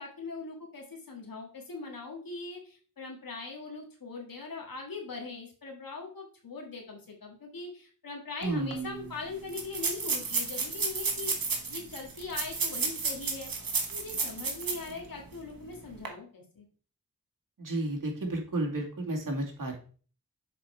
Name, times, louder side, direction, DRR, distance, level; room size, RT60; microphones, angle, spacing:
voice 1, 0.0-13.5 13.9-16.6, left 3 dB, 85° left, 0 dB, 1.8 m, -41 dB
voice 2, 8.4-9.1 17.6-19.8, right 2 dB, 70° right, 0 dB, 2.1 m, -32 dB
sound 1, 8.4-8.5 8.7-8.8 9.5-14.9 15.3-15.4 15.9-16.1, right 4 dB, 85° right, 1.5 m, -32 dB
6.9 x 5.0 x 4.4 m, 0.41 s
wide cardioid pair, 75°, 34 cm